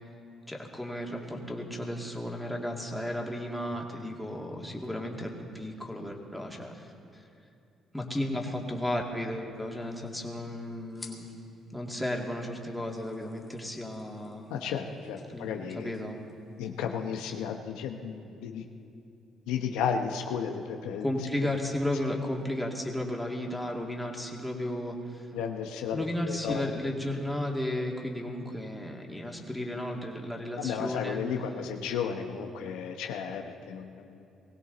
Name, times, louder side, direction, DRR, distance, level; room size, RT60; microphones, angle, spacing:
voice 1, 0.5-7.2 7.9-11.3 11.7-14.5 15.3-16.2 21.0-25.3 25.9-31.2, left 1 dB, 5° left, 0 dB, 2.4 m, -34 dB
sound 1, 9.5-17.2, left 3 dB, 30° left, 2.8 m, -56 dB
voice 2, 14.5-15.9 16.6-18.6 19.5-21.0 21.4-21.5 25.3-26.6 30.6-34.2, left 7 dB, 85° left, 4 dB, 0.9 m, -33 dB
20.5 x 16.5 x 4.0 m, 2.7 s
supercardioid pair, 75°, 0 cm